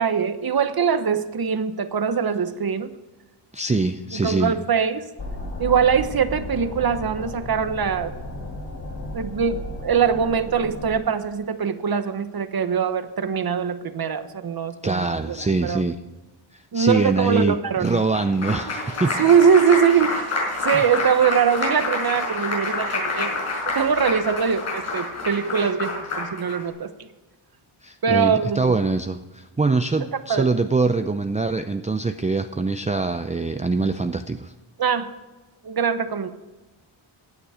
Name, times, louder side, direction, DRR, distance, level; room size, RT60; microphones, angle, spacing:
voice 1, 0.0-2.9 4.2-5.0 5.6-8.1 9.1-15.8 16.7-18.0 19.2-20.3 20.6-23.4 23.6-27.1 28.0-28.7 30.3-30.5 34.8-35.1 35.6-36.3, right 7 dB, 45° right, 11 dB, 1.0 m, -22 dB
voice 2, 3.5-4.6 14.8-16.0 16.5-19.1 20.7-20.9 27.8-34.5, right 3 dB, 15° right, 7 dB, 0.5 m, -24 dB
sound 1, 5.2-10.9, left 2 dB, 55° left, 4.9 m, -34 dB
Applause, 17.8-26.6, left 2 dB, 90° left, 5.8 m, -28 dB
16.0 x 9.9 x 5.0 m, 1.1 s
wide cardioid pair, 130°, 49 cm